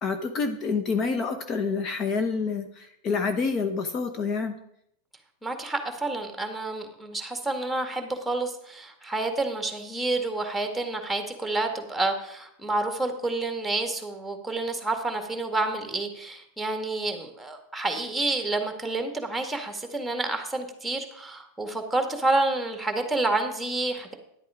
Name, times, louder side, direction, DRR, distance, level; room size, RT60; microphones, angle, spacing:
voice 1, 0.0-4.6, left 4 dB, 35° left, 7 dB, 1.1 m, -28 dB
voice 2, 5.4-24.1, right 2 dB, 5° right, 5 dB, 1.9 m, -29 dB
11.0 x 8.2 x 5.0 m, 0.74 s
hypercardioid pair, 115°, 0 cm